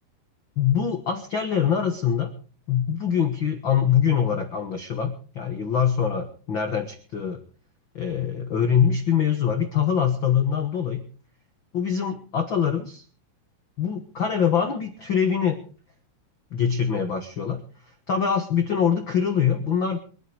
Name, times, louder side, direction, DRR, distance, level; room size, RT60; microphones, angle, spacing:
voice 1, 0.6-2.3 2.7-7.4 7.9-11.0 11.7-13.0 13.8-15.6 16.5-17.6 18.1-20.0, left 8 dB, 60° left, 6 dB, 1.2 m, -24 dB
24.5 x 9.6 x 4.9 m, 0.41 s
omnidirectional pair, 4.4 m